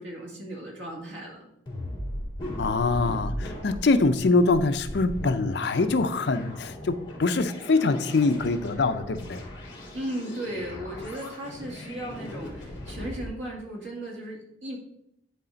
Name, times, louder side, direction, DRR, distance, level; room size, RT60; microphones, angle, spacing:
voice 1, 0.0-1.5 9.9-14.8, right 1 dB, 80° right, -1 dB, 2.2 m, -36 dB
sound 1, 1.7-13.3, left 1 dB, 25° left, 2.6 m, -38 dB
voice 2, 2.6-9.4, left 3 dB, 65° left, 10 dB, 0.5 m, -24 dB
10.0 x 4.2 x 4.0 m, 0.76 s
head